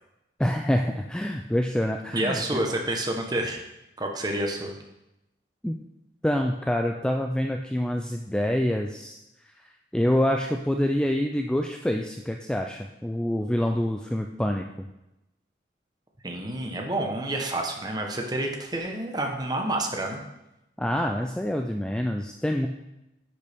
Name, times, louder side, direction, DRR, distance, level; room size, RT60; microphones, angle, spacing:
voice 1, 0.4-2.6 5.6-5.8 6.2-9.2 9.6-14.9 20.8-22.7, left 1 dB, 5° left, 3 dB, 0.3 m, -26 dB
voice 2, 2.1-3.6 4.0-4.8 16.2-20.2, right 1 dB, 20° right, 2 dB, 1.0 m, -29 dB
9.9 x 6.8 x 3.5 m, 0.92 s
head